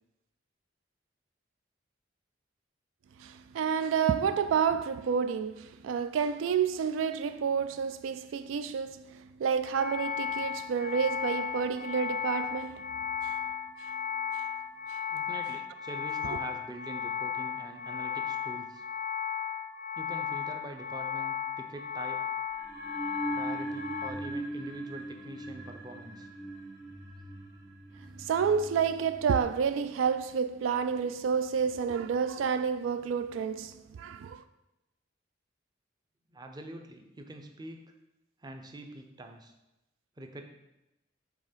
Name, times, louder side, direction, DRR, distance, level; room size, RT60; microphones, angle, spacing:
voice 1, 3.2-13.4 13.8-13.9 14.9-15.0 28.1-34.4, right 6 dB, 85° right, 0.3 m, -30 dB
sound 1, 9.6-24.1, left 8 dB, 40° left, 0.3 m, -35 dB
voice 2, 15.1-18.8 19.9-22.3 23.3-26.3 36.3-37.9 38.4-39.5 40.2-40.4, right 1 dB, 20° right, 0.6 m, -44 dB
sound 2, 22.5-29.4, right 2 dB, 55° right, 1.8 m, -40 dB
6.8 x 3.4 x 5.1 m
head